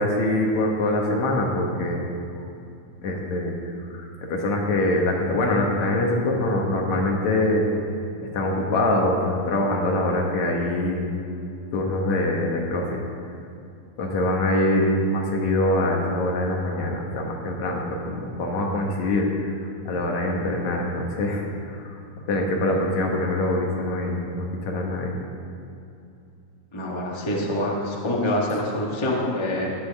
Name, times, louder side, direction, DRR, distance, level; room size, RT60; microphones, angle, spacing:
voice 1, 0.0-2.0 3.0-3.6 3.9-7.7 8.3-11.0 11.7-13.0 14.0-22.0 22.3-25.1, left 1 dB, 70° left, 0 dB, 2.6 m, -24 dB
voice 2, 26.7-29.7, left 1 dB, 45° left, -3 dB, 0.3 m, -25 dB
19.0 x 7.7 x 3.5 m, 2.6 s
omnidirectional pair, 3.5 m